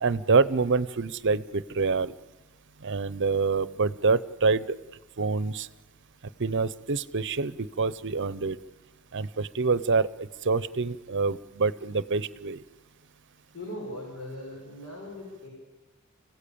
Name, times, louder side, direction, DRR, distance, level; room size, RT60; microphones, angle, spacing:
voice 1, 0.0-2.1 2.8-4.7 5.2-5.7 6.4-8.6 9.1-12.6, right 4 dB, 55° right, 17 dB, 0.7 m, -26 dB
voice 2, 13.5-15.5, left 1 dB, 75° left, -2 dB, 5.4 m, -39 dB
26.5 x 16.0 x 8.6 m, 1.2 s
head